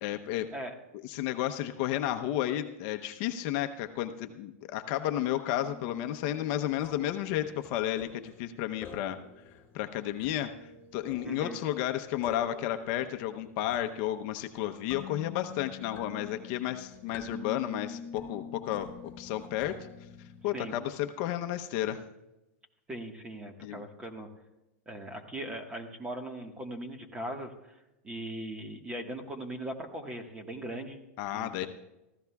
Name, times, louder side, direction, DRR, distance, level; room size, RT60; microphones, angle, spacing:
voice 1, 0.0-0.5 1.0-9.2 9.7-18.9 19.2-19.9 20.4-22.0 23.6-23.8 31.2-31.7, left 12 dB, 45° left, 6 dB, 0.8 m, -32 dB
sound 1, 5.4-20.7, left 6 dB, 30° left, 4.3 m, -47 dB
voice 2, 11.2-11.6 20.5-20.8 22.9-24.3 24.9-27.8 28.0-31.0 31.3-31.7, right 1 dB, 15° right, 4 dB, 1.5 m, -39 dB
24.0 x 15.0 x 2.4 m, 0.95 s
supercardioid pair, 150°, 7 cm